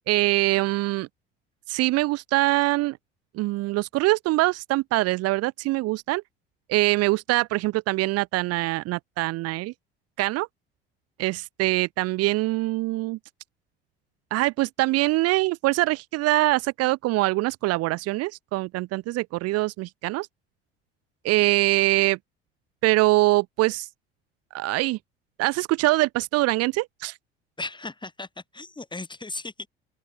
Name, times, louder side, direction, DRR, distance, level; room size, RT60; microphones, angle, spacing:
voice 1, 0.1-1.1 1.7-3.0 3.3-6.2 6.7-9.7 10.2-10.5 11.2-13.2 14.3-20.3 21.2-22.2 22.8-23.9 24.5-25.0 25.4-27.2, right 19 dB, 55° right, 1.1 m, -23 dB
voice 2, 27.6-29.7, left 3 dB, 15° left, 7.0 m, -36 dB
figure-of-eight pair, 60°, 31 cm